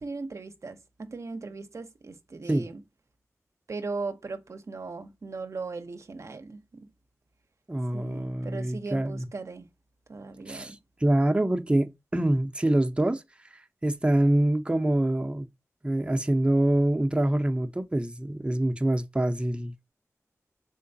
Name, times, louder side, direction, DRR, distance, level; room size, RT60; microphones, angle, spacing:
voice 1, 0.0-2.8 3.7-6.9 7.9-9.7 10.1-10.8, right 3 dB, 65° right, 0.6 m, -38 dB
voice 2, 7.7-9.3 10.5-10.8 11.0-13.2 13.8-15.5 15.8-19.9, right 1 dB, 20° right, 0.6 m, -25 dB
3.8 x 3.1 x 2.6 m
cardioid pair, 50°, 6 cm